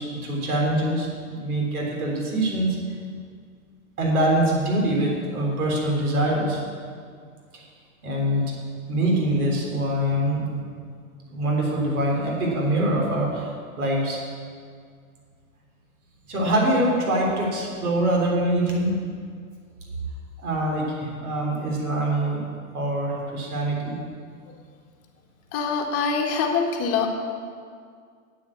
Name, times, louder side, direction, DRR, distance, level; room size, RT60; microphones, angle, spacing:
voice 1, 0.0-2.7 4.0-6.6 8.0-8.5 8.9-10.6 11.3-13.5 13.8-14.2 16.3-19.0 20.4-22.4 22.7-24.0, right 1 dB, 90° right, -1 dB, 3.7 m, -24 dB
voice 2, 25.5-27.1, left 5 dB, 35° left, 2 dB, 1.7 m, -24 dB
9.0 x 8.6 x 8.6 m, 2.1 s
hypercardioid pair, 135°, 43 cm